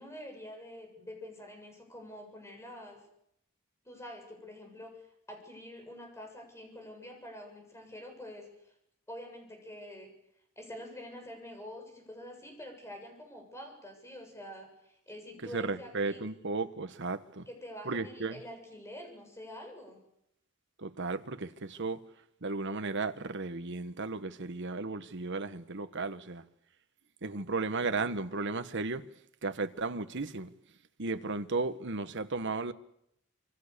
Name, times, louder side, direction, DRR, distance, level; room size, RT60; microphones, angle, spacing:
voice 1, 0.0-3.0 3.8-5.0 5.3-8.5 9.1-10.1 10.6-16.2 17.5-20.0, left 1 dB, 15° left, 7.3 m, -46 dB
voice 2, 15.4-17.5 17.8-18.4 20.8-22.0 22.4-26.4 27.2-29.0 29.4-30.5 31.0-32.7, right 3 dB, 60° right, 1.4 m, -34 dB
26.5 x 24.5 x 6.9 m
head